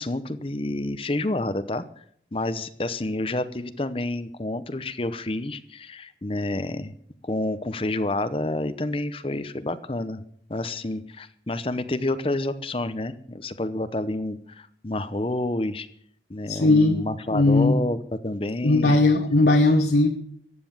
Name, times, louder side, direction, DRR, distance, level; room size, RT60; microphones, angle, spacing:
voice 1, 0.0-1.8 2.3-6.9 7.2-10.2 10.5-15.9 16.3-18.0 18.2-19.0, left 2 dB, 30° left, 12 dB, 0.8 m, -29 dB
voice 2, 16.5-17.0 17.3-17.8 18.6-20.1, left 2 dB, 65° left, 2 dB, 1.3 m, -18 dB
15.0 x 9.6 x 7.2 m, 0.64 s
head